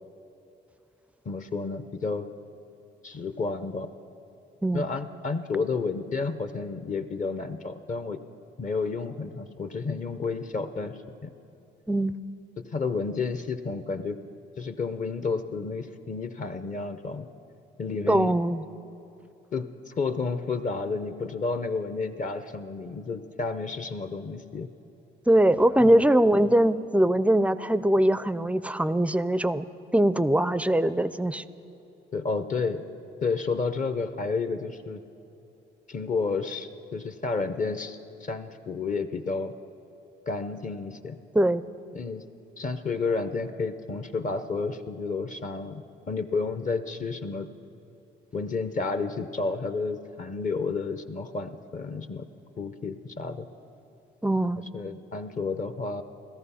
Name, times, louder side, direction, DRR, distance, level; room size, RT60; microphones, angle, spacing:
voice 1, 1.2-2.3 3.0-3.9 4.7-8.2 8.6-11.3 12.7-14.2 14.6-17.3 17.8-18.3 19.5-24.7 25.7-26.0 32.1-32.8 33.2-35.0 35.9-39.5 40.3-41.2 41.9-42.2 42.6-47.5 48.3-52.2 52.6-53.5 54.7-56.0, left 4 dB, 40° left, 10 dB, 0.7 m, -31 dB
voice 2, 18.1-18.6 25.3-29.7 29.9-31.4 41.3-41.6 54.2-54.7, right 1 dB, 5° right, 15 dB, 0.4 m, -22 dB
17.0 x 13.5 x 5.6 m, 2.9 s
cardioid pair, 90°, 20 cm